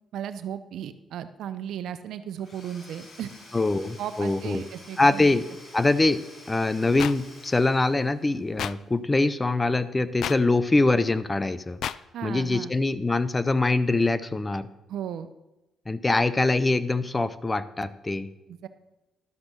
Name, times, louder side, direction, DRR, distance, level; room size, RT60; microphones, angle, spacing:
voice 1, 0.1-3.3 4.0-5.4 12.1-12.7 14.9-15.3 18.5-18.7, right 9 dB, 75° right, 12 dB, 0.7 m, -35 dB
Domestic sounds home sounds / Tools, 2.4-8.5, left 1 dB, 40° left, 3.8 m, -49 dB
voice 2, 3.5-4.6 5.0-5.4 5.7-11.8 12.2-14.7 15.9-18.3, left 2 dB, 20° left, 14 dB, 0.6 m, -23 dB
sound 1, 7.0-7.1 8.6-8.7 10.2-10.4 11.8-12.0, left 10 dB, 75° left, 0.3 m, -29 dB
12.0 x 6.4 x 6.1 m, 0.98 s
cardioid pair, 90°, 0 cm